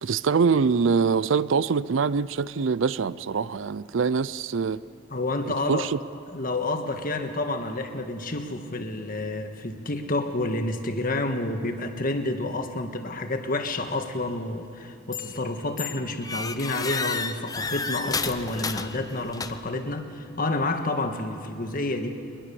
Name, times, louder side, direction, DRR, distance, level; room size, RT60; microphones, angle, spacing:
voice 1, 0.0-4.8 5.5-6.0, right 5 dB, 70° right, 0.5 m, -24 dB
voice 2, 5.1-5.9 6.3-22.1, left 2 dB, 45° left, 1.6 m, -29 dB
sound 1, 15.1-15.5 15.8-19.8, left 4 dB, 20° left, 0.7 m, -32 dB
22.5 x 21.0 x 7.0 m
head